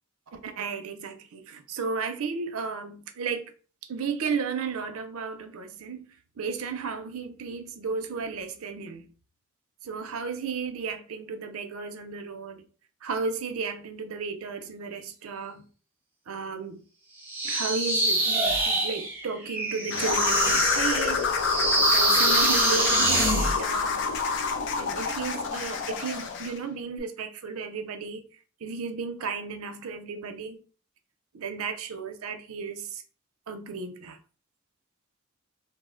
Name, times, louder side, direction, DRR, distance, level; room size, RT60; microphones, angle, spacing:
voice 1, 0.4-3.5 3.8-6.1 6.4-9.1 9.8-12.6 13.0-15.7 16.3-16.8 17.4-21.3 21.9-24.1 24.7-28.2 28.6-30.6 31.3-33.0 33.5-34.2, right 5 dB, 90° right, 0.5 m, -34 dB
sound 1, 17.3-23.6, right 2 dB, 10° right, 0.7 m, -25 dB
sound 2, 19.9-26.6, left 5 dB, 60° left, 0.5 m, -27 dB
2.7 x 2.0 x 3.6 m
head